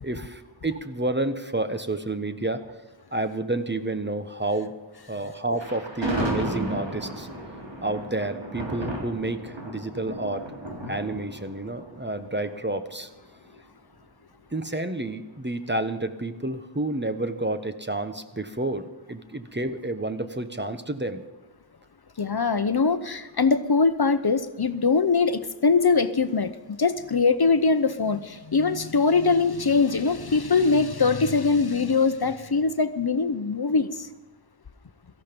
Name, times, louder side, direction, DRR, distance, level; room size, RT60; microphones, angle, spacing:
voice 1, 0.0-2.6 3.1-4.7 5.1-7.3 7.8-10.5 10.9-13.1 14.5-21.2, right 2 dB, 25° right, 9 dB, 1.2 m, -30 dB
Thunder, 5.6-12.8, right 1 dB, 70° right, 3.8 m, -33 dB
voice 2, 22.2-26.5 26.8-34.1, left 4 dB, 55° left, 12 dB, 0.8 m, -22 dB
17.5 x 14.0 x 5.3 m, 1.1 s
wide cardioid pair, 40°, 46 cm